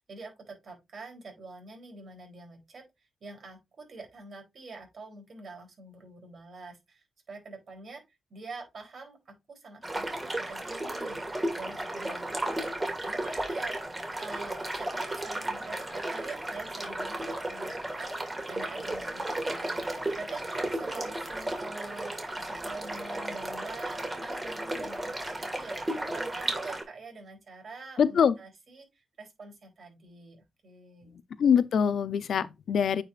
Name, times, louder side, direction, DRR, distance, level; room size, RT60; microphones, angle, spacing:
voice 1, 0.0-2.9 3.2-8.0 8.3-31.2, right 3 dB, 55° right, 3.6 m, -46 dB
sound 1, 9.8-26.8, right 1 dB, 20° right, 2.5 m, -34 dB
voice 2, 28.0-28.3 31.4-33.0, left 7 dB, 70° left, 0.6 m, -24 dB
9.0 x 4.9 x 2.5 m
cardioid pair, 95°, 0 cm